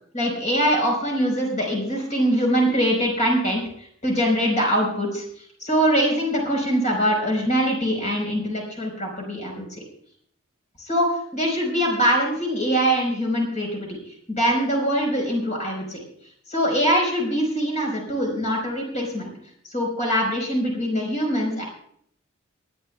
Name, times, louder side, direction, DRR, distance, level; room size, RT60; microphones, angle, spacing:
voice 1, 0.1-3.6 4.0-5.2 5.6-9.7 10.8-11.1 11.3-14.0 14.3-16.0 16.5-19.3 19.6-21.6, equal, 35° left, -1 dB, 4.5 m, -23 dB
28.0 x 10.0 x 2.3 m, 0.65 s
head